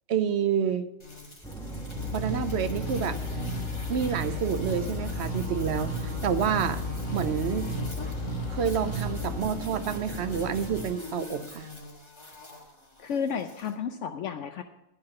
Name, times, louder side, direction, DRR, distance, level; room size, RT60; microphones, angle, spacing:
voice 1, 0.1-0.9 2.1-3.2 3.9-6.8 7.1-7.7 8.5-11.7, right 7 dB, 60° right, 10 dB, 0.8 m, -28 dB
sound 1, 1.0-13.7, left 2 dB, 20° left, 1.5 m, -43 dB
sound 2, 1.4-10.8, right 2 dB, 5° left, 1.1 m, -38 dB
sound 3, 2.0-9.5, left 2 dB, 40° left, 1.3 m, -34 dB
voice 2, 13.0-14.6, left 7 dB, 70° left, 7 dB, 0.9 m, -32 dB
11.5 x 5.8 x 6.4 m, 0.91 s
omnidirectional pair, 1.4 m